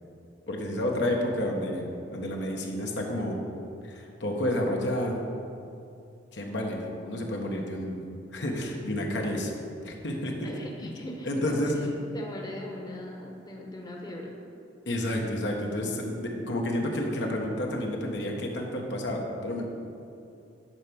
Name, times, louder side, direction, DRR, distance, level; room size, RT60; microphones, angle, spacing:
voice 1, 0.5-3.4 3.8-5.2 6.3-8.0 8.3-9.5 9.8-10.5 10.8-10.9 11.2-11.8 14.9-19.6, left 1 dB, 75° left, 0 dB, 1.3 m, -30 dB
voice 2, 10.4-14.3, left 1 dB, 20° left, 0 dB, 1.0 m, -40 dB
10.5 x 4.6 x 7.0 m, 2.5 s
head